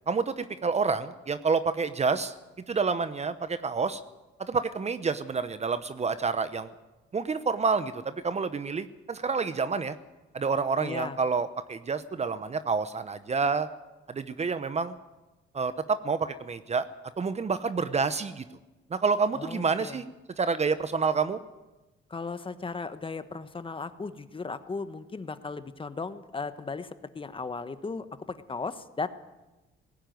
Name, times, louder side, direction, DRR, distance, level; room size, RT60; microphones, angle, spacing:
voice 1, 0.1-2.3 2.7-4.0 4.4-6.7 7.1-10.0 10.3-13.7 14.1-14.9 15.5-16.9 17.2-18.4 18.9-20.1 20.4-21.4, right 5 dB, 35° right, 12 dB, 0.9 m, -28 dB
voice 2, 10.8-11.2 19.3-20.0 22.1-29.1, left 4 dB, 25° left, 12 dB, 1.2 m, -36 dB
18.0 x 15.5 x 9.4 m, 1.1 s
cardioid pair, 90°, 20 cm